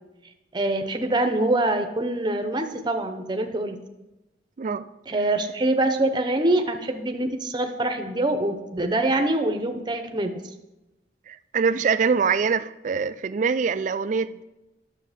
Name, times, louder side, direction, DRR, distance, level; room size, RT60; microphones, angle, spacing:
voice 1, 0.5-3.8 5.1-10.3, right 2 dB, 25° right, 6 dB, 0.8 m, -24 dB
voice 2, 11.3-14.4, right 5 dB, 45° right, 14 dB, 0.3 m, -24 dB
9.7 x 6.6 x 5.0 m, 0.99 s
head